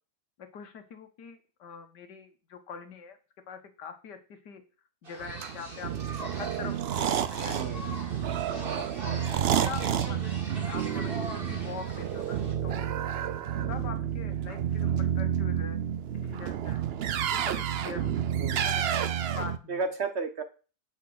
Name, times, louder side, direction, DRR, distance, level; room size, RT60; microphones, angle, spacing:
voice 1, 0.4-3.2 3.5-4.6 5.0-5.9 6.3-7.7 8.5-8.9 9.5-13.0 13.7-15.8 16.1-16.8 17.3-18.1 18.6-18.8 19.4-19.8, left 6 dB, 80° left, 8 dB, 1.9 m, -43 dB
sound 1, 5.0-12.5, right 1 dB, 30° right, 2.4 m, -43 dB
sound 2, 5.2-19.6, right 9 dB, 75° right, 0.5 m, -30 dB
voice 2, 7.5-7.9 9.1-9.2 18.4-18.7 19.7-20.4, right 4 dB, 50° right, 9 dB, 0.9 m, -33 dB
8.6 x 5.5 x 7.8 m, 0.36 s
omnidirectional pair, 1.8 m